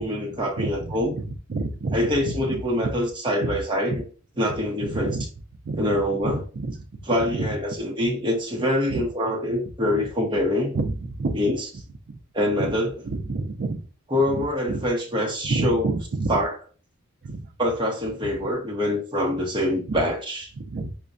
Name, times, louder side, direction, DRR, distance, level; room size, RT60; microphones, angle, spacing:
voice 1, 0.0-1.2 1.9-4.0 4.4-5.2 5.8-6.4 7.1-10.8 11.3-11.6 12.3-12.9 14.1-15.9 16.3-16.5 17.6-20.5, left 1 dB, 20° right, 0.8 m, -25 dB
voice 2, 0.6-2.2 2.5-2.6 3.4-3.6 4.8-5.3 5.6-6.7 7.3-7.5 8.9-9.0 10.7-11.4 12.1-12.2 12.6-12.7 13.0-13.8 14.3-14.9 15.4-16.3 17.2-17.5 18.2-18.3 19.9-20.0 20.6-20.9, right 3 dB, 50° right, 0.4 m, -29 dB
5.2 x 2.2 x 2.5 m
head